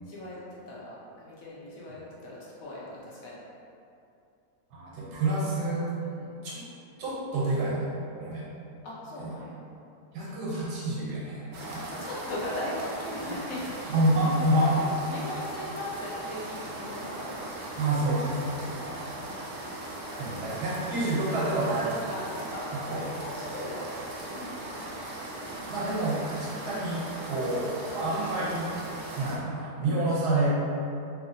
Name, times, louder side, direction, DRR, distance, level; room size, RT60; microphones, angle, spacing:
voice 1, 0.0-3.3 6.0-6.3 8.8-9.6 10.3-10.4 11.9-13.6 14.8-17.5 19.2-19.5 22.1-22.9 23.2-25.0 25.3-26.4, left 1 dB, 65° left, -6 dB, 1.0 m, -39 dB
voice 2, 4.7-5.9 6.4-6.6 7.0-7.9 8.2-8.4 9.2-9.4 10.1-11.9 13.2-13.3 13.9-14.8 17.8-18.9 20.2-22.1 22.9-23.0 25.7-28.7 29.1-30.5, right 1 dB, 90° right, -6 dB, 1.4 m, -28 dB
sound 1, 11.5-29.4, right 2 dB, 65° right, 0.7 m, -39 dB
3.1 x 2.9 x 2.7 m, 2.6 s
omnidirectional pair, 1.7 m